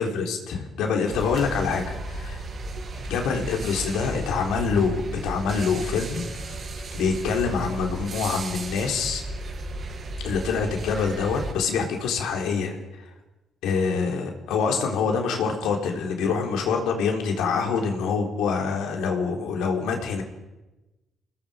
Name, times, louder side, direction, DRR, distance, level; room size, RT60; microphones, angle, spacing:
voice 1, 0.0-2.5 3.0-6.6 6.9-9.2 10.2-12.8 13.6-20.2, left 5 dB, 90° left, 2 dB, 3.9 m, -25 dB
sound 1, 1.1-11.5, right 2 dB, 50° right, 5.6 m, -34 dB
29.0 x 20.5 x 5.2 m, 1.0 s
cardioid pair, 90°, 0 cm